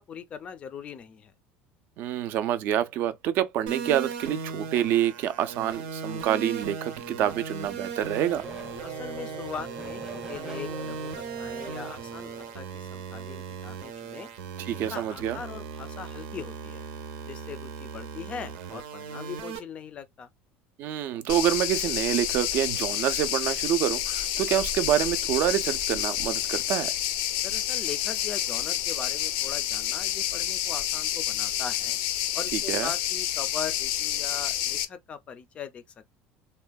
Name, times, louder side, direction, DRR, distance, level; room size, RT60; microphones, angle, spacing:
voice 1, 0.0-1.3 8.8-14.3 14.7-16.8 17.3-20.3 27.4-32.0 32.3-35.8, left 7 dB, 25° left, 0.4 m, -40 dB
voice 2, 2.0-8.4 14.7-15.4 20.8-26.9 32.7-32.9, right 11 dB, 45° right, 0.3 m, -27 dB
sound 1, 3.7-19.6, right 5 dB, 85° right, 0.7 m, -38 dB
Race car auto racing / Accelerating revving vroom, 7.4-12.8, right 5 dB, 15° right, 0.8 m, -43 dB
sound 2, 21.3-34.9, left 12 dB, 85° left, 0.4 m, -29 dB
3.4 x 2.1 x 2.2 m
cardioid pair, 165°, 5 cm